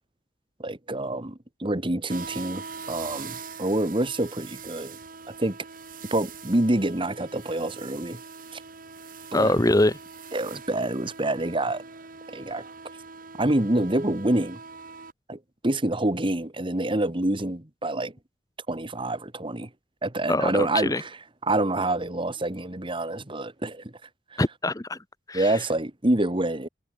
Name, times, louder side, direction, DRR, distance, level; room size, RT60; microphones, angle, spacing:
voice 1, 0.6-5.0 5.3-5.6 6.1-8.2 8.5-8.6 9.3-9.5 10.3-11.8 12.3-12.6 13.4-14.6 15.3-18.1 18.7-19.7 20.0-21.1 21.4-23.9 24.3-24.4 25.3-26.7, right 1 dB, 30° right, 1.7 m, -27 dB
sound 1, 2.1-15.1, right 5 dB, 50° right, 2.5 m, -42 dB
voice 2, 9.3-10.0 20.3-21.0 24.4-25.0 25.3-25.6, left 1 dB, 20° left, 1.0 m, -23 dB
head